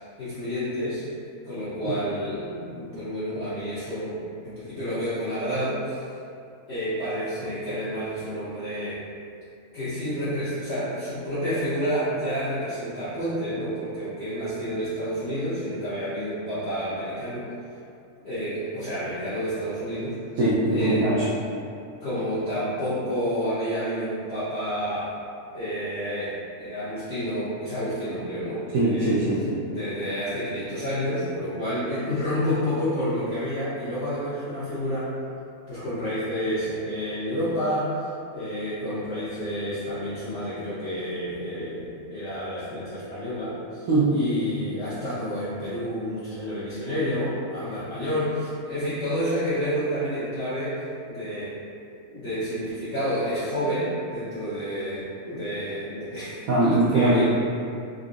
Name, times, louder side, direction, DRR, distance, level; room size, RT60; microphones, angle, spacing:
voice 1, 0.2-1.0 1.4-6.1 6.7-9.0 9.7-17.5 18.2-20.2 20.7-21.1 22.0-25.1 25.5-29.1 29.6-35.1 35.7-50.8 51.1-51.5 52.1-57.2, equal, 50° left, -13 dB, 0.9 m, -29 dB
voice 2, 20.4-21.3 28.7-29.6 43.9-44.2 56.5-57.2, right 2 dB, 70° right, -9 dB, 1.0 m, -21 dB
3.8 x 2.4 x 2.5 m, 2.5 s
omnidirectional pair, 1.6 m